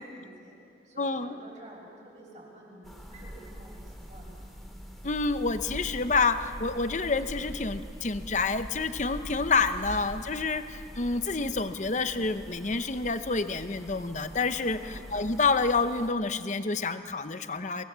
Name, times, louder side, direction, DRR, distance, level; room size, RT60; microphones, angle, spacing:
voice 1, 0.0-4.4 14.6-15.0, right 1 dB, 40° right, -2 dB, 6.4 m, -50 dB
voice 2, 1.0-1.3 5.0-17.8, left 4 dB, 40° left, 10 dB, 0.9 m, -28 dB
sound 1, 2.8-16.1, equal, ahead, 2.4 m, -43 dB
24.5 x 19.5 x 7.5 m, 2.5 s
head